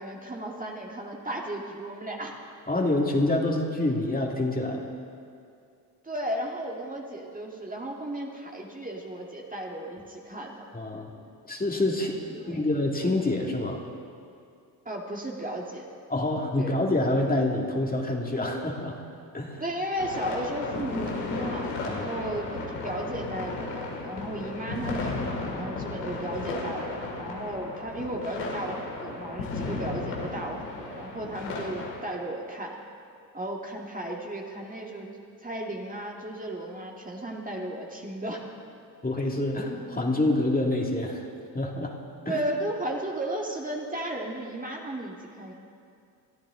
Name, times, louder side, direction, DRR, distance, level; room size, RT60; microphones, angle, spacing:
voice 1, 0.0-2.4 6.0-10.7 12.3-12.6 14.9-15.9 16.6-16.8 19.6-32.8 33.3-35.1 35.4-38.5 42.3-45.5, right 1 dB, 15° right, -1 dB, 2.1 m, -34 dB
voice 2, 2.7-4.9 10.7-11.1 11.5-12.2 12.5-13.8 16.1-19.0 19.3-19.6 21.9-22.1 39.0-41.3 41.5-41.9 42.3-42.4, left 2 dB, 20° left, 0 dB, 2.3 m, -27 dB
sound 1, 20.0-32.0, left 3 dB, 85° left, 2.3 m, -34 dB
22.5 x 13.0 x 3.8 m, 2.4 s
hypercardioid pair, 60°, 48 cm